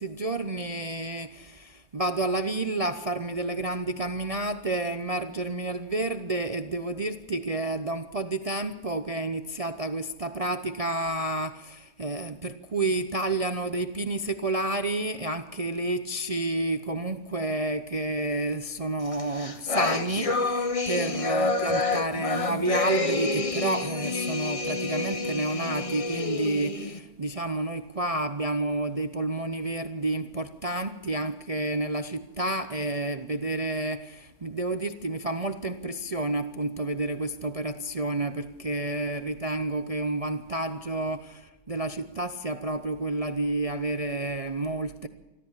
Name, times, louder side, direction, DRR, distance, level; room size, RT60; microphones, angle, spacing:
voice 1, 0.0-45.1, right 2 dB, 55° right, 9 dB, 0.4 m, -30 dB
sound 1, 19.1-27.0, left 3 dB, 25° left, 0.8 m, -28 dB
26.5 x 13.5 x 7.4 m, 1.1 s
omnidirectional pair, 1.8 m